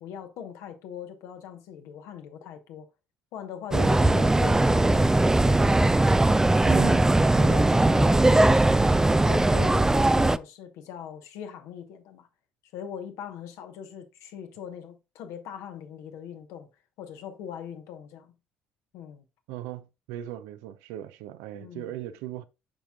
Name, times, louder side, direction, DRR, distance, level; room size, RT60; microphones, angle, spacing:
voice 1, 0.0-2.9 3.3-5.9 6.8-7.0 7.3-8.9 9.2-12.3 12.7-16.7 17.0-18.3 18.9-19.2 21.5-21.9, left 8 dB, 65° left, 1.2 m, -41 dB
sound 1, 3.7-10.4, right 2 dB, 10° right, 0.4 m, -20 dB
voice 2, 6.4-7.0 19.5-22.4, right 13 dB, 70° right, 0.6 m, -37 dB
8.8 x 5.8 x 2.4 m
hypercardioid pair, 55°, 5 cm